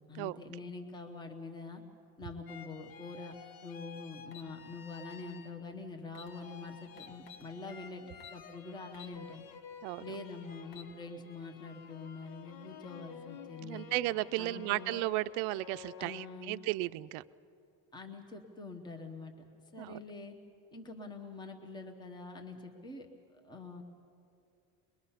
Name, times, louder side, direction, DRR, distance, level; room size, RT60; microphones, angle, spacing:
voice 1, 0.1-1.8 2.2-3.4 3.6-9.4 10.0-13.9 14.4-15.0 16.0-16.6 17.9-19.4 19.7-20.3 20.7-23.1 23.4-23.8, left 3 dB, 10° left, 4 dB, 0.9 m, -45 dB
sound 1, 2.5-5.9 6.2-16.8, left 7 dB, 60° left, 1.0 m, -52 dB
sound 2, 4.3-4.5 5.7-5.8 6.1-6.3 7.0-7.5 8.2-8.4 8.9-9.2 9.6-9.7 10.5-10.9, left 8 dB, 80° left, 1.5 m, -51 dB
voice 2, 13.6-17.2 19.8-20.0, right 19 dB, 85° right, 15 dB, 0.5 m, -34 dB
22.5 x 22.0 x 5.7 m, 2.5 s
cardioid pair, 175°, 39 cm